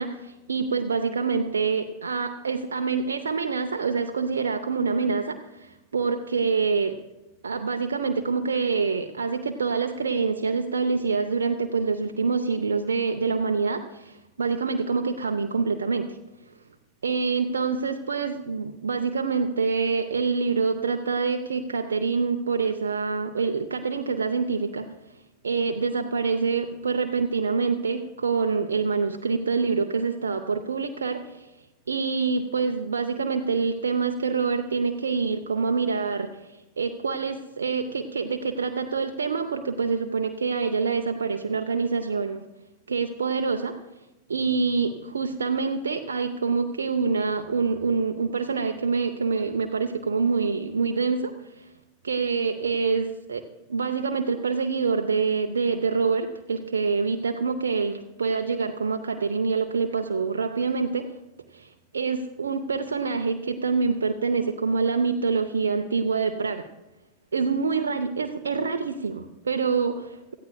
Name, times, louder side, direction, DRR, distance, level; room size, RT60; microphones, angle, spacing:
voice 1, 0.0-7.0 7.4-16.2 17.0-24.9 25.4-31.5 31.9-42.4 42.9-43.8 44.3-51.7 52.0-53.4 53.7-61.1 61.5-66.7 67.3-70.3, right 5 dB, 70° right, 5 dB, 0.6 m, -26 dB
17.5 x 13.5 x 2.3 m, 0.99 s
figure-of-eight pair, 90°, 0 cm